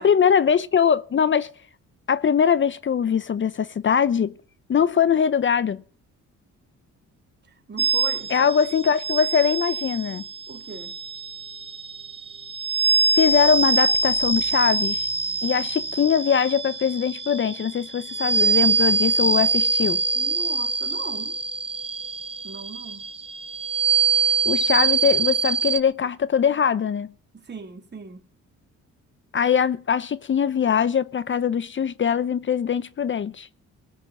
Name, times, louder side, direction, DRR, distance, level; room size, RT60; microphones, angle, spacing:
voice 1, 0.0-1.5 2.1-4.3 4.7-5.8 8.3-10.2 13.1-15.1 15.4-20.0 24.4-27.1 29.3-33.5, left 7 dB, 40° left, 0.8 m, -22 dB
voice 2, 7.5-8.6 10.5-11.0 20.1-21.4 22.4-23.1 27.3-28.3, right 5 dB, 35° right, 3.6 m, -39 dB
sound 1, 7.8-25.8, right 4 dB, 20° right, 1.4 m, -24 dB
19.0 x 6.5 x 9.0 m
cardioid pair, 90°, 30 cm